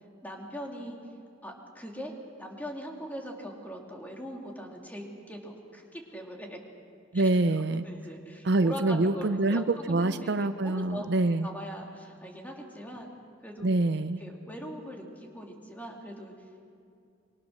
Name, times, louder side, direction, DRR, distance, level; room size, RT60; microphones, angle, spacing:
voice 1, 0.2-1.0 1.4-2.1 2.4-6.6 7.5-11.1 11.4-13.1 13.4-13.7 14.2-16.3, equal, 10° left, 0 dB, 2.7 m, -41 dB
voice 2, 7.1-7.8 8.4-11.5 13.6-14.2, right 2 dB, 60° right, 11 dB, 0.7 m, -25 dB
25.5 x 24.0 x 6.5 m, 2.5 s
head